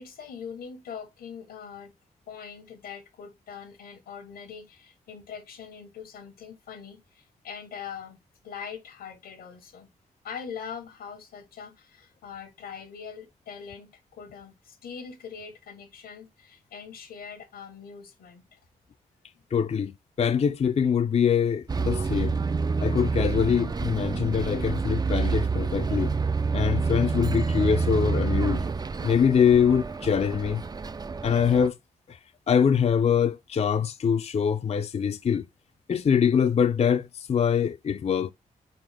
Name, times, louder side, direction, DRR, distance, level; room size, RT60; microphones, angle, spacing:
voice 1, 0.0-1.9 2.3-8.2 8.4-9.9 10.2-18.6, left 7 dB, 90° left, 1.1 m, -42 dB
voice 2, 19.5-22.3 22.8-26.1 26.5-28.6 29.0-30.6 31.2-31.8 32.1-32.2 32.5-35.5 35.9-38.3, left 7 dB, 45° left, 0.4 m, -24 dB
Bus, 21.7-31.7, right 4 dB, 25° right, 0.4 m, -28 dB
4.0 x 3.9 x 3.4 m
cardioid pair, 50°, 15 cm